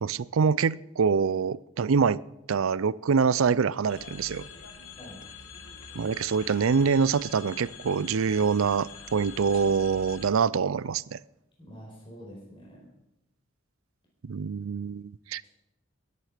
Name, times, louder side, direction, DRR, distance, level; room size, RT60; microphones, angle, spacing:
voice 1, 0.0-2.2 2.5-4.4 6.0-11.2 14.2-15.4, right 5 dB, 80° right, 20 dB, 0.5 m, -25 dB
sound 1, 3.9-10.3, left 6 dB, 80° left, 1.9 m, -45 dB
voice 2, 11.6-12.9, equal, 25° left, -3 dB, 4.9 m, -46 dB
21.0 x 9.5 x 5.1 m, 0.91 s
head